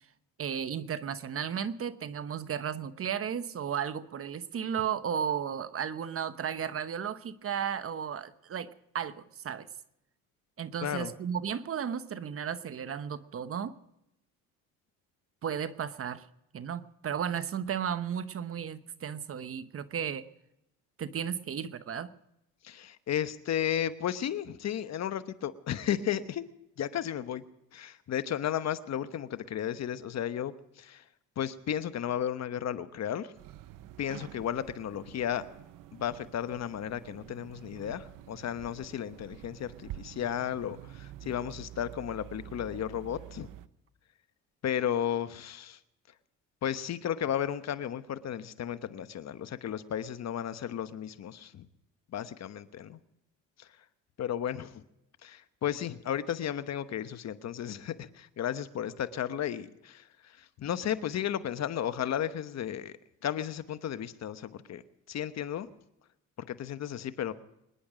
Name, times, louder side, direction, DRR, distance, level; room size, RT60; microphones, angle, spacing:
voice 1, 0.4-9.7 10.6-13.8 15.4-16.3 16.5-20.3 21.0-22.1, right 8 dB, 40° right, 13 dB, 1.0 m, -34 dB
voice 2, 10.8-11.1 22.6-26.5 26.8-27.4 27.7-31.0 31.4-33.3 34.0-35.5 35.9-43.5 44.6-45.8 46.6-51.7 52.1-53.0 53.6-53.7 54.2-54.8 55.2-60.0 60.4-63.0 63.2-64.8 65.1-65.7 66.5-67.3, left 10 dB, 50° left, 12 dB, 1.0 m, -34 dB
sound 1, 33.3-43.7, right 13 dB, 70° right, 0.8 m, -48 dB
25.0 x 10.5 x 5.0 m, 0.85 s
cardioid pair, 90°, 33 cm